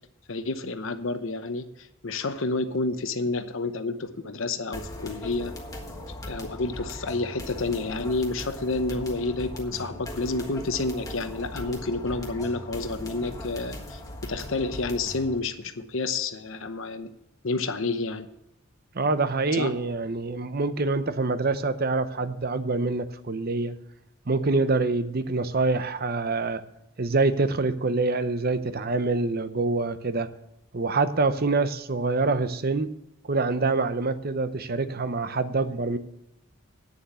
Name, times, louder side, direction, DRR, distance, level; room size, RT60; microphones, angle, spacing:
voice 1, 0.3-1.7 2.0-5.5 6.3-17.1 17.4-18.3 19.6-19.7, left 3 dB, 65° left, 9 dB, 0.8 m, -29 dB
sound 1, 4.7-15.4, left 1 dB, 15° left, 1.5 m, -39 dB
voice 2, 18.9-23.8 24.3-26.6 27.0-30.3 30.7-32.9 33.2-36.0, right 3 dB, 45° right, 12 dB, 0.7 m, -25 dB
9.3 x 7.2 x 7.9 m, 0.87 s
head